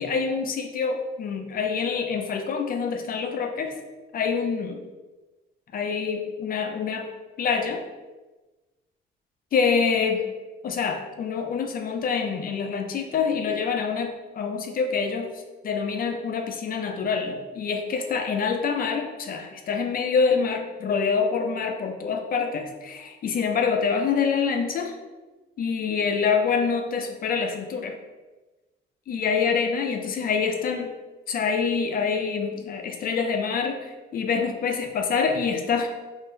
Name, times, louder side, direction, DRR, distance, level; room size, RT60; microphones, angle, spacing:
voice 1, 0.0-3.7 4.1-4.8 5.7-7.1 7.4-7.8 9.5-10.3 10.6-24.9 25.6-28.0 29.1-30.9 31.3-35.9, left 5 dB, 45° left, 5 dB, 0.4 m, -26 dB
2.5 x 2.0 x 3.5 m, 1.2 s
cardioid pair, 90°, 20 cm